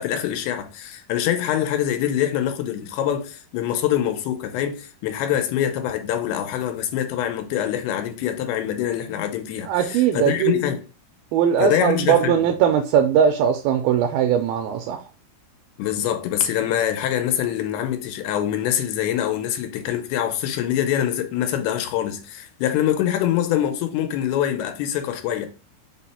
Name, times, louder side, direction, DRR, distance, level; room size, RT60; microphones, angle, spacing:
voice 1, 0.0-10.8 11.6-12.3 15.8-25.5, left 11 dB, 90° left, 2.7 m, -24 dB
voice 2, 9.7-10.6 11.3-15.0, right 8 dB, 80° right, 2.2 m, -20 dB
6.0 x 2.1 x 4.1 m
omnidirectional pair, 4.5 m